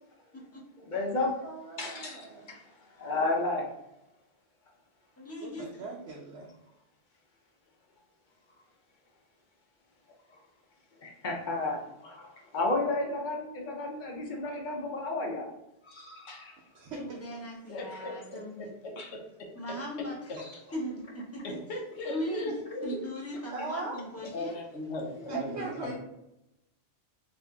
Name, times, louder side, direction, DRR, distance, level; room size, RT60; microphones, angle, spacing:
voice 1, 0.8-1.3 1.8-2.6 3.0-3.6 11.0-12.3 12.5-15.5 15.8-16.5 18.9-19.1, left 2 dB, 50° left, 1 dB, 0.7 m, -32 dB
voice 2, 1.4-2.6 5.4-6.5 16.7-17.4 23.5-24.0 25.3-26.0, right 4 dB, 85° right, -2 dB, 0.9 m, -40 dB
voice 3, 5.2-5.9 16.9-18.7 19.5-20.3 20.7-21.6 22.1-22.5 22.8-24.6, equal, 15° left, -3 dB, 0.6 m, -38 dB
voice 4, 17.7-18.7 21.4-23.0 24.2-26.0, left 2 dB, 90° left, 0 dB, 0.9 m, -38 dB
2.8 x 2.6 x 3.4 m, 0.87 s
omnidirectional pair, 1.1 m